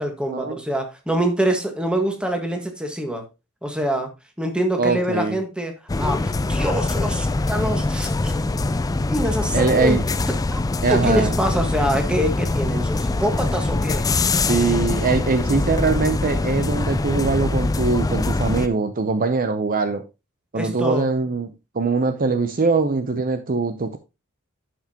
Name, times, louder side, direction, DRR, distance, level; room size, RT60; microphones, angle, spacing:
voice 1, 0.0-3.2 3.6-4.1 4.4-8.3 9.0-10.0 10.9-14.0 20.5-21.1, right 1 dB, 5° right, 1.6 m, -25 dB
voice 2, 4.8-5.4 9.5-10.0 10.8-11.3 14.5-20.0 20.5-24.0, right 4 dB, 40° right, 0.6 m, -22 dB
sound 1, 5.9-18.7, left 2 dB, 15° left, 0.3 m, -23 dB
11.0 x 6.0 x 2.9 m
head